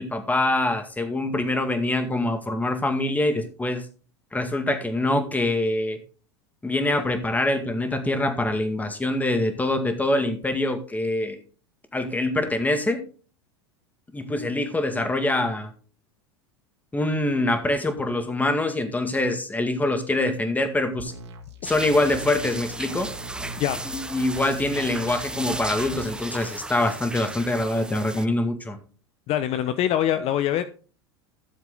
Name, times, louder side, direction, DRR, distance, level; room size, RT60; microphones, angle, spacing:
voice 1, 0.0-3.9 4.3-6.0 6.6-11.4 11.9-13.0 14.1-15.7 16.9-21.1 21.6-23.1 23.9-28.8, left 2 dB, 10° left, 8 dB, 2.0 m, -24 dB
sound 1, 21.0-26.0, right 2 dB, 75° right, 2.4 m, -41 dB
sound 2, 21.6-28.2, right 2 dB, 5° right, 0.8 m, -35 dB
voice 2, 29.3-30.6, left 11 dB, 45° left, 11 dB, 0.8 m, -23 dB
13.5 x 7.3 x 4.0 m, 0.38 s
hypercardioid pair, 85°, 14 cm